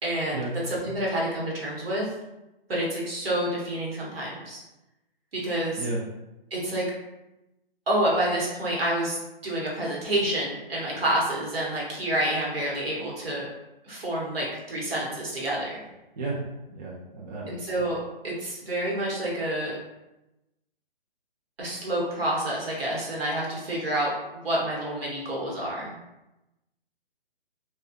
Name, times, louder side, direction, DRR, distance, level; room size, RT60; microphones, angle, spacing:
voice 1, 0.0-2.1 2.7-4.6 5.3-5.8 6.5-6.9 7.9-9.2 9.4-13.5 13.8-15.8 17.5-19.7 21.6-25.9, right 1 dB, 75° right, -4 dB, 1.1 m, -28 dB
voice 2, 16.7-17.5, right 3 dB, 45° right, -6 dB, 0.6 m, -32 dB
2.5 x 2.3 x 2.4 m, 0.97 s
hypercardioid pair, 160°, 30 cm